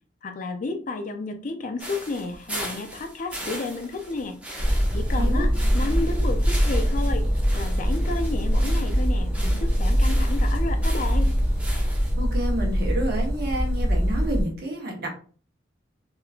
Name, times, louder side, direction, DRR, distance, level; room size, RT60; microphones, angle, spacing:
voice 1, 0.2-4.4 4.9-7.3 7.5-11.3, left 3 dB, 45° left, 6 dB, 0.5 m, -32 dB
sound 1, 1.8-12.1, right 1 dB, 5° right, 0.7 m, -39 dB
sound 2, 4.6-14.4, equal, 10° left, 1.1 m, -23 dB
voice 2, 12.2-15.1, equal, 55° right, 0 dB, 1.1 m, -29 dB
3.5 x 2.8 x 2.4 m, 0.41 s
head